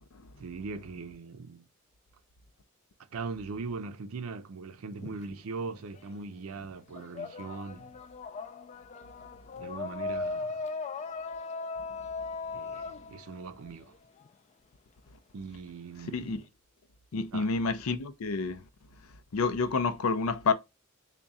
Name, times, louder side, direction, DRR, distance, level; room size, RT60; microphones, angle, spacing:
voice 1, 0.4-1.7 3.1-7.9 9.6-10.6 12.5-13.9 15.3-16.5 17.3-17.5, right 4 dB, 75° right, 0.5 m, -40 dB
sound 1, 4.9-6.2 6.5-14.3, left 3 dB, 30° left, 0.3 m, -38 dB
voice 2, 17.1-18.6 19.3-20.5, left 4 dB, 90° left, 0.5 m, -28 dB
3.6 x 2.2 x 4.0 m
head